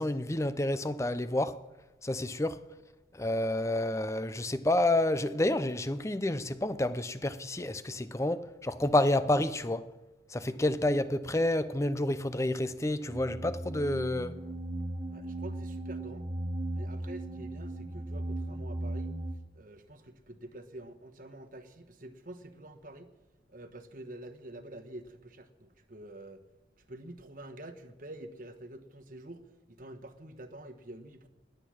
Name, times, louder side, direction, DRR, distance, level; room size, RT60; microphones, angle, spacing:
voice 1, 0.0-1.6 2.0-2.6 3.2-9.9 10.3-14.4, left 1 dB, 15° left, 0.5 m, -29 dB
sound 1, 13.1-19.3, right 1 dB, 25° right, 0.9 m, -37 dB
voice 2, 15.1-16.3 16.7-19.2 19.5-23.1 23.5-26.4 26.8-31.3, right 1 dB, 45° right, 1.2 m, -47 dB
20.5 x 8.9 x 6.3 m
head